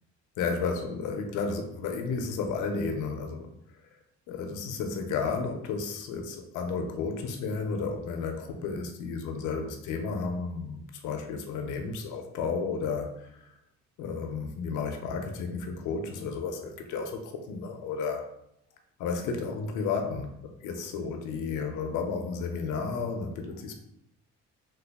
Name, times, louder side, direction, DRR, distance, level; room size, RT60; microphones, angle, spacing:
voice 1, 0.4-3.5 4.3-13.5 14.0-18.3 19.0-23.7, left 4 dB, 85° left, 5 dB, 0.5 m, -32 dB
3.0 x 2.3 x 3.4 m, 0.77 s
cardioid pair, 90°, 30 cm